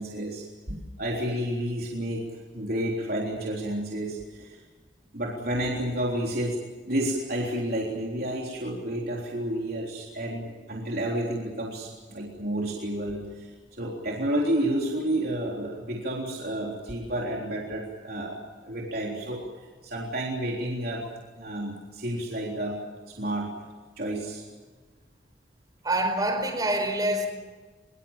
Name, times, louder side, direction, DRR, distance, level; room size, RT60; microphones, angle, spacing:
voice 1, 0.0-2.2 2.5-4.6 5.1-6.6 6.9-19.4 19.8-21.0 21.4-22.8 23.1-23.5 24.0-24.4, right 1 dB, 55° right, -2 dB, 3.7 m, -30 dB
voice 2, 25.8-27.3, right 1 dB, 20° right, 5 dB, 4.8 m, -26 dB
24.0 x 23.5 x 7.4 m, 1.4 s
head